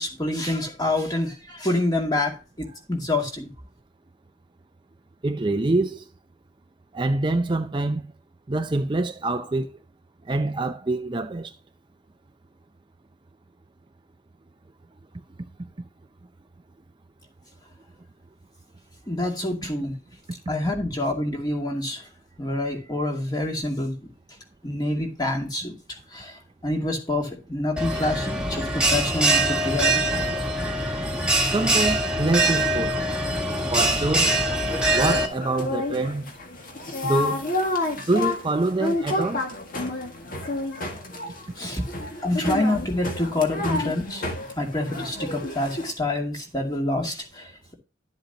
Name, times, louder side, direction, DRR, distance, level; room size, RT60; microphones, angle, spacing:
voice 1, 0.0-3.5 19.1-20.0 20.5-22.1 22.4-23.9 24.6-25.8 26.1-30.0 41.6-41.8 42.2-44.2 44.6-47.7, left 2 dB, 20° left, 2.3 m, -27 dB
voice 2, 5.2-6.0 6.9-8.1 8.5-9.7 10.3-11.5 31.5-33.0 33.7-34.4 34.9-36.2 37.0-37.4 38.1-39.5, right 2 dB, 25° right, 0.5 m, -25 dB
Bell, 27.8-35.3, right 1 dB, 5° right, 1.7 m, -23 dB
sound 1, 34.7-45.9, left 2 dB, 45° left, 1.9 m, -30 dB
11.5 x 7.9 x 2.9 m
head